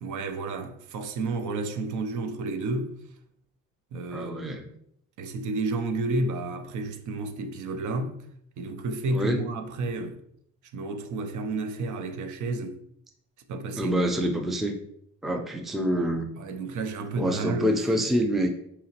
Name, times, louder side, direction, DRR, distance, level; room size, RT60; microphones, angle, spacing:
voice 1, 0.0-3.0 3.9-4.6 5.2-8.2 8.6-10.2 10.7-12.8 13.5-14.0 16.4-18.1, right 3 dB, 70° right, 0.6 m, -31 dB
voice 2, 4.1-4.7 9.1-9.4 13.8-14.8 15.2-16.3 17.2-18.5, equal, ahead, 0.3 m, -26 dB
4.9 x 2.9 x 2.8 m
cardioid pair, 125°, 31 cm